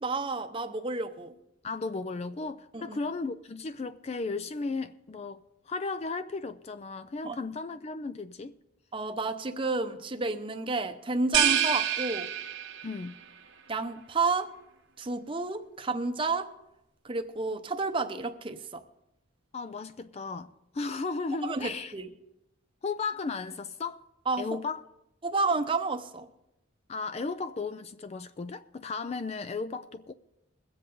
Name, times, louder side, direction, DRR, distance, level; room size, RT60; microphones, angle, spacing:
voice 1, 0.0-1.3 2.7-3.0 7.2-7.4 8.9-12.3 13.7-14.5 15.0-16.5 17.0-18.8 21.4-22.1 24.3-24.6 25.2-26.3, right 3 dB, 25° right, 0.7 m, -31 dB
voice 2, 1.6-8.5 12.8-13.1 19.5-21.9 22.8-24.0 24.4-24.8 26.9-30.1, left 4 dB, 30° left, 0.3 m, -35 dB
sound 1, 11.3-13.1, right 10 dB, 60° right, 0.8 m, -27 dB
21.5 x 7.7 x 3.9 m
head